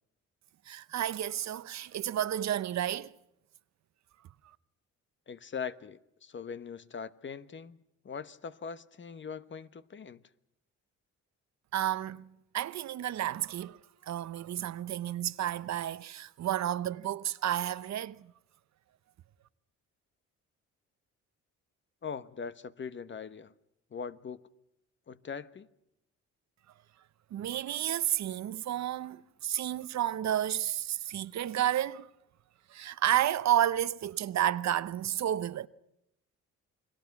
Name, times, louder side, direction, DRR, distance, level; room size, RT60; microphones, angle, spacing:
voice 1, 0.7-3.1 11.7-12.3 12.5-18.3 27.3-32.1 32.7-35.7, right 11 dB, 65° right, 0.9 m, -31 dB
voice 2, 5.3-7.8 8.0-10.2 22.0-23.5 23.9-24.4 25.1-25.7, left 6 dB, 40° left, 1.1 m, -41 dB
29.5 x 21.0 x 6.0 m
cardioid pair, 90°, 30 cm